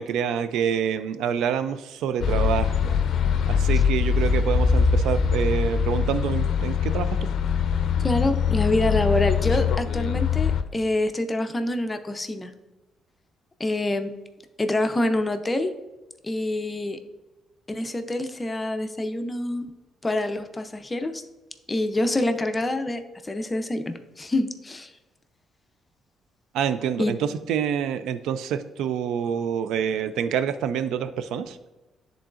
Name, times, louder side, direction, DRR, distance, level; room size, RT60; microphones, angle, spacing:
voice 1, 0.0-2.9 3.5-7.1 26.5-31.6, right 8 dB, 85° right, 12 dB, 0.3 m, -27 dB
sound 1, 2.2-10.6, left 6 dB, 70° left, 0.5 m, -23 dB
voice 2, 8.0-12.5 13.6-14.1 14.6-15.7 16.2-17.0 17.7-19.7 20.0-21.2 21.7-24.9 27.0-27.1, left 1 dB, 20° left, 7 dB, 0.5 m, -26 dB
10.0 x 3.8 x 2.5 m, 1.1 s
cardioid pair, 90°, 0 cm